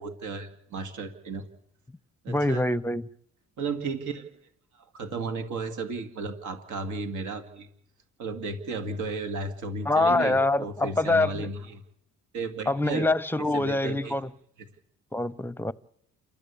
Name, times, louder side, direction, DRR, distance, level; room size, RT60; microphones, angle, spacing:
voice 1, 0.0-1.4 2.2-2.7 3.6-4.3 4.7-7.7 8.2-11.8 12.3-13.1 13.5-14.1, right 4 dB, 75° right, 2.4 m, -34 dB
voice 2, 2.3-3.1 9.9-11.5 12.7-14.3 15.1-15.7, left 2 dB, 5° left, 0.7 m, -25 dB
28.0 x 13.0 x 8.5 m
cardioid pair, 90°, 30 cm